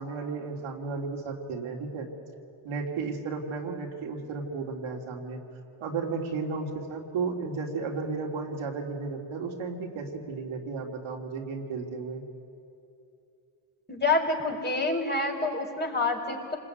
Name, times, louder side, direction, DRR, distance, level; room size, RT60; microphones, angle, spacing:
voice 1, 0.0-2.1 2.6-5.4 5.8-12.2, right 4 dB, 75° right, 0 dB, 3.4 m, -34 dB
voice 2, 13.9-16.6, left 3 dB, 20° left, 1 dB, 4.6 m, -27 dB
27.0 x 20.5 x 9.6 m, 2.8 s
cardioid pair, 80°, 50 cm